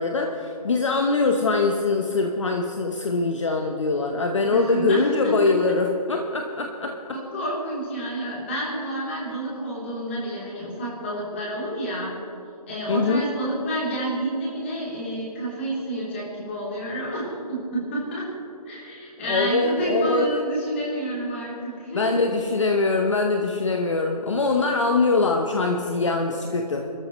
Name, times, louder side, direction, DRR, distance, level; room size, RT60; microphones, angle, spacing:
voice 1, 0.0-7.2 12.9-13.3 19.3-20.3 21.9-26.9, left 3 dB, 50° left, 3 dB, 1.0 m, -23 dB
voice 2, 4.5-5.5 7.1-12.1 12.7-18.3 18.7-22.2, right 1 dB, 20° left, -6 dB, 3.2 m, -29 dB
28.0 x 13.5 x 3.1 m, 2.9 s
hypercardioid pair, 180°, 21 cm